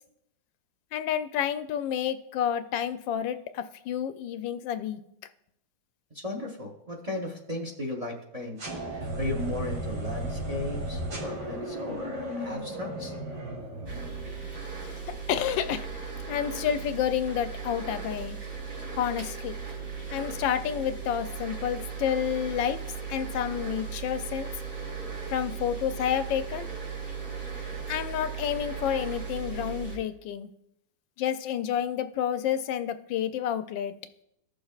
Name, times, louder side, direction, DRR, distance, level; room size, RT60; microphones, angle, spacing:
voice 1, 0.9-5.0 14.8-15.0 15.3-15.9 16.3-18.4 18.9-19.5 20.1-22.8 23.1-24.5 25.3-26.7 27.9-30.5 31.2-34.0, left 9 dB, 90° left, 10 dB, 1.3 m, -29 dB
voice 2, 6.2-8.6 8.9-13.1, left 2 dB, 25° right, 1 dB, 0.9 m, -36 dB
sound 1, 8.6-14.5, right 1 dB, 65° right, 2.5 m, -35 dB
sound 2, 13.8-30.0, right 5 dB, 45° right, 3.8 m, -37 dB
15.0 x 6.5 x 2.4 m, 0.78 s
omnidirectional pair, 2.0 m